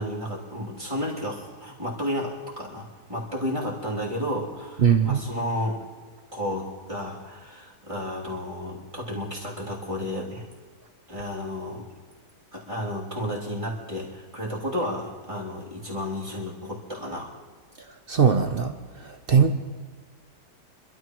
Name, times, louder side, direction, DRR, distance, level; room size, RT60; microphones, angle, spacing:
voice 1, 0.0-5.8 6.3-10.5 11.1-11.9 12.5-17.3 19.3-19.5, equal, 20° right, -6 dB, 3.1 m, -32 dB
voice 2, 4.8-5.2 18.1-18.7 19.0-19.5, right 7 dB, 55° right, 7 dB, 0.6 m, -20 dB
26.0 x 12.5 x 3.1 m, 1.4 s
omnidirectional pair, 1.8 m